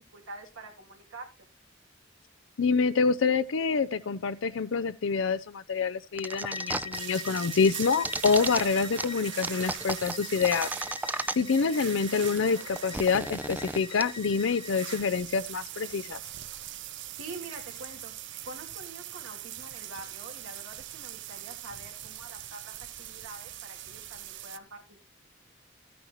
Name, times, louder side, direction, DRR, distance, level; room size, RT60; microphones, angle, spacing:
voice 1, 0.1-1.3 11.4-11.8 17.1-18.1 18.4-25.0, right 2 dB, 85° right, 2.7 m, -46 dB
voice 2, 2.6-10.7 11.3-16.2, left 5 dB, 70° left, 0.5 m, -27 dB
sound 1, 6.2-7.0 7.3-8.6 9.0-9.1 9.4-11.6 11.9-12.0 12.1-14.0, right 2 dB, 10° right, 0.5 m, -33 dB
Bowed string instrument, 6.3-15.1, left 5 dB, 25° left, 0.7 m, -43 dB
sound 2, 6.9-24.6, right 13 dB, 65° right, 0.6 m, -42 dB
14.0 x 9.4 x 3.0 m
head